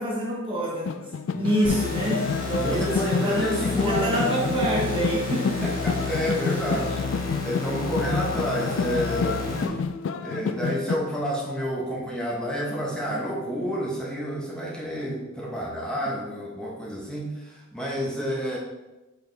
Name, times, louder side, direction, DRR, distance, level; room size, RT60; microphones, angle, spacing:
voice 1, 0.0-5.6 6.7-6.8 9.4-9.8, right 1 dB, 25° right, -3 dB, 0.9 m, -27 dB
sound 1, 0.9-11.0, left 5 dB, 55° left, 0.3 m, -29 dB
Engine / Drill, 1.2-7.4, right 1 dB, 85° right, 2.0 m, -43 dB
sound 2, 1.6-9.6, left 3 dB, 40° left, 1.2 m, -31 dB
voice 2, 2.6-4.4 5.6-9.5 10.2-18.6, equal, 5° left, -4 dB, 1.0 m, -30 dB
5.4 x 4.8 x 3.9 m, 1.0 s
head